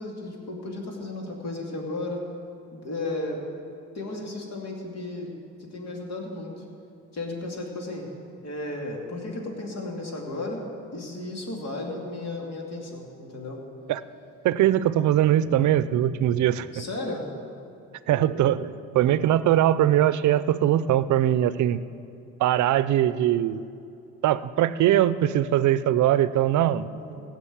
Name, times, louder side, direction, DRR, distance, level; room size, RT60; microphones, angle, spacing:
voice 1, 0.0-2.2 2.7-3.4 3.9-5.3 5.6-6.6 7.1-8.1 8.4-10.6 10.9-13.6 16.7-17.3 26.9-27.2, left 2 dB, 60° left, 0 dB, 2.7 m, -34 dB
voice 2, 14.4-16.8 18.1-21.8 22.4-23.6 24.2-26.9, right 12 dB, 75° right, 16 dB, 0.6 m, -21 dB
16.5 x 6.1 x 8.7 m, 2.5 s
cardioid pair, 90°, 30 cm